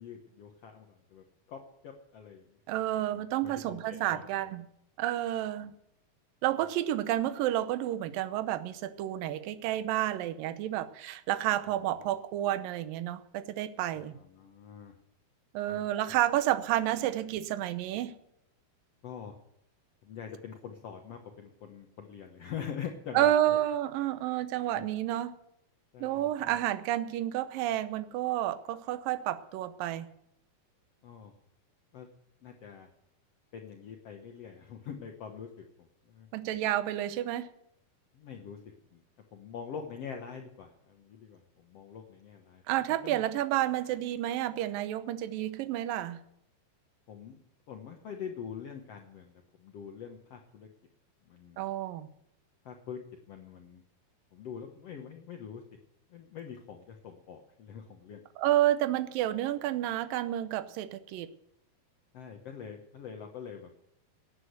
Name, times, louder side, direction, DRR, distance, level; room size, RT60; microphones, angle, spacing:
voice 1, 0.0-2.6 2.9-4.5 12.0-12.1 13.9-14.9 15.7-16.1 19.0-19.3 20.0-23.6 24.7-24.9 25.9-26.6 31.0-31.3 31.9-32.1 32.4-32.9 33.5-36.3 38.1-38.6 38.9-39.0 39.3-42.6 42.9-43.2 47.1-47.4 47.7-49.3 49.6-50.7 51.3-51.6 52.6-53.0 53.3-53.8 54.3-55.6 56.1-58.2 62.1-63.8, left 7 dB, 85° left, 3 dB, 1.3 m, -44 dB
voice 2, 2.7-4.7 5.0-5.7 6.4-14.2 15.5-18.1 23.1-25.3 26.0-30.1 36.3-37.5 42.7-46.2 51.6-52.1 58.4-61.3, right 13 dB, 75° right, 12 dB, 2.3 m, -30 dB
18.0 x 8.4 x 8.0 m, 0.79 s
omnidirectional pair, 4.6 m